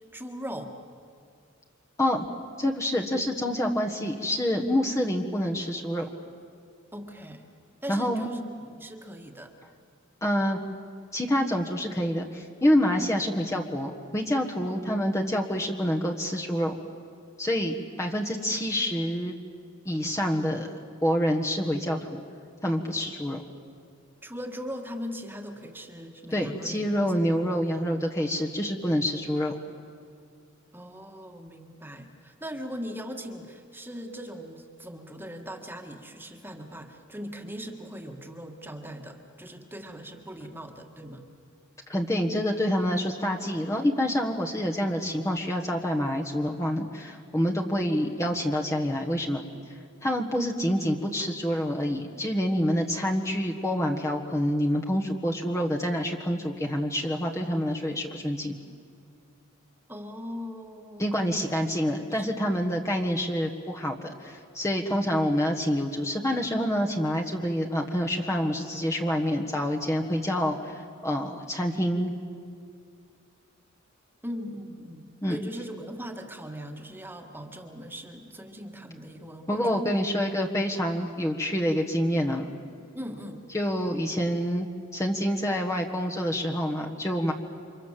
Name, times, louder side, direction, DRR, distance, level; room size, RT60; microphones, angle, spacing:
voice 1, 0.1-0.8 6.9-7.4 7.8-8.5 8.7-9.5 14.7-14.9 24.2-28.0 30.7-41.2 59.9-61.5 62.0-62.3 74.2-79.9 82.9-83.4, equal, 10° right, 4 dB, 1.8 m, -40 dB
voice 2, 2.6-6.1 7.9-8.3 10.2-10.6 11.1-16.7 17.4-19.3 19.8-20.7 21.0-22.2 22.6-23.4 26.3-29.6 41.9-49.4 50.0-58.5 61.0-72.1 75.2-75.4 79.5-82.5 83.5-84.7 84.9-87.3, equal, 15° left, 0 dB, 1.5 m, -27 dB
30.0 x 26.0 x 7.5 m, 2.2 s
head